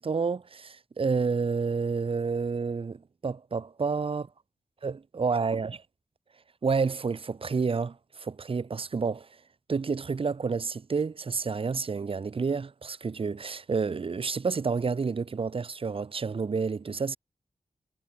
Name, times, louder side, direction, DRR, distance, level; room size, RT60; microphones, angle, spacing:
voice 1, 0.0-4.3 4.8-5.8 6.6-9.3 9.7-17.2, right 5 dB, 45° right, 0.6 m, -29 dB
cardioid pair, 40°, 13 cm